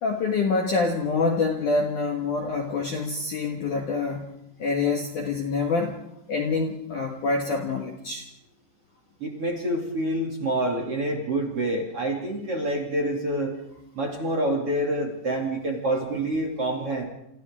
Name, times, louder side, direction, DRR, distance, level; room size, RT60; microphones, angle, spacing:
voice 1, 0.0-4.3 4.6-6.0 6.3-8.3, left 4 dB, 60° left, 1 dB, 2.3 m, -26 dB
voice 2, 9.2-13.5 13.9-17.1, right 1 dB, 40° right, 1 dB, 2.6 m, -27 dB
28.5 x 27.5 x 3.7 m, 0.84 s
omnidirectional pair, 5.7 m